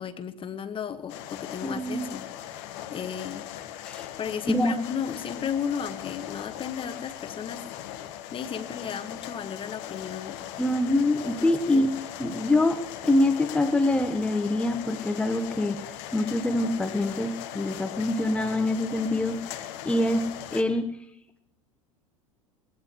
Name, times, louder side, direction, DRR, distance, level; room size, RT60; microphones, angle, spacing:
voice 1, 0.0-2.6 2.9-3.4 4.2-7.6 8.0-10.4 11.2-11.9, left 7 dB, 30° left, 10 dB, 1.4 m, -34 dB
sound 1, 1.1-20.6, left 12 dB, 55° left, 1.4 m, -39 dB
voice 2, 1.6-2.1 3.8-4.1 4.5-4.8 10.6-15.8 16.1-21.0, left 1 dB, 5° left, 7 dB, 1.2 m, -25 dB
20.5 x 18.5 x 3.1 m, 0.76 s
figure-of-eight pair, 80°, 18 cm